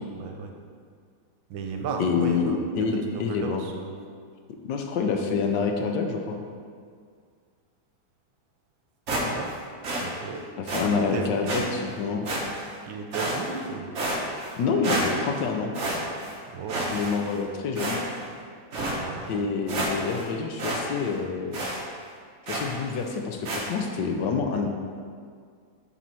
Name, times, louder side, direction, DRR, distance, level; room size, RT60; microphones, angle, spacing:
voice 1, 0.1-0.5 1.5-3.9 9.3-9.5 10.0-10.4 10.8-11.8 12.8-13.9 16.5-16.9 19.0-19.4, right 4 dB, 80° right, 3 dB, 1.5 m, -35 dB
voice 2, 2.0-3.6 4.6-6.4 10.7-11.6 12.0-12.2 14.6-15.7 16.9-18.0 19.3-21.6 22.5-24.7, left 5 dB, 70° left, 3 dB, 1.3 m, -27 dB
sound 1, 9.1-9.6 9.8-10.1 10.7-10.9 11.5-11.6 12.3-12.7 13.1-13.6 14.0-14.6 14.8-15.4 15.7-16.4 16.7-17.4 17.8-18.3 18.7-19.0 19.4-19.5 19.7-20.3 20.6-20.8 21.1-21.2 21.5-21.8 22.5-22.8 23.5-23.7, right 1 dB, 45° right, 1.1 m, -29 dB
7.4 x 4.2 x 5.4 m, 2.1 s
omnidirectional pair, 2.1 m